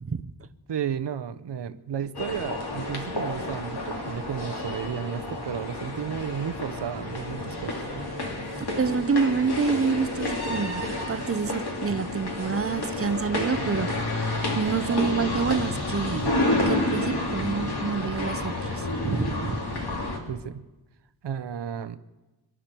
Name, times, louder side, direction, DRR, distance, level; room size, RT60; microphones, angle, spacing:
voice 1, 0.7-7.7 20.3-20.6 21.2-22.0, right 8 dB, 70° right, 12 dB, 0.8 m, -33 dB
sound 1, 2.1-20.2, left 2 dB, 60° left, 2.6 m, -30 dB
voice 2, 8.7-13.9 14.6-19.6, right 5 dB, 30° right, 11 dB, 0.7 m, -27 dB
25.5 x 11.5 x 4.5 m, 1.1 s
wide cardioid pair, 115°, 43 cm